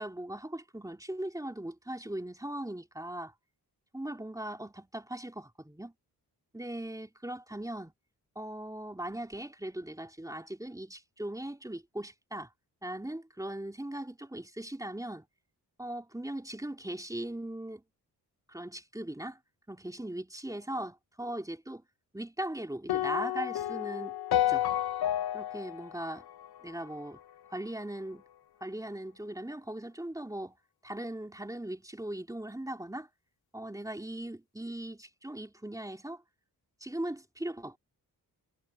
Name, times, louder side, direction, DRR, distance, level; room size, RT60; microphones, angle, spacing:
voice 1, 0.0-3.3 3.9-5.9 6.5-7.9 8.3-12.5 12.8-15.3 15.8-17.8 18.5-19.4 19.7-21.8 22.1-24.6 25.3-26.3 26.6-27.2 27.5-28.2 28.6-30.6 30.8-33.1 33.5-36.2 36.8-37.8, right 1 dB, 10° right, 2.8 m, -39 dB
sound 1, 22.9-27.2, left 12 dB, 70° left, 0.8 m, -31 dB
cardioid pair, 75°, 39 cm